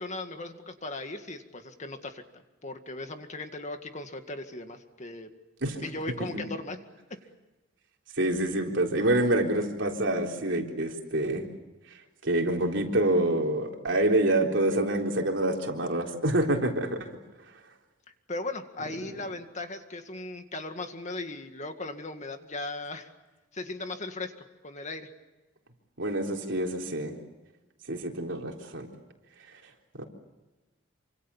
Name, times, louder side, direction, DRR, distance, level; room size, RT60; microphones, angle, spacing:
voice 1, 0.0-2.2 2.6-5.3 5.8-6.8 18.3-23.1 23.5-24.3 24.6-25.1, left 2 dB, 35° left, 7 dB, 2.0 m, -37 dB
voice 2, 8.2-11.5 12.2-17.1 26.0-27.1 27.9-28.9 30.0-30.1, right 1 dB, 65° right, 1 dB, 4.0 m, -27 dB
27.5 x 25.5 x 7.3 m, 1.1 s
head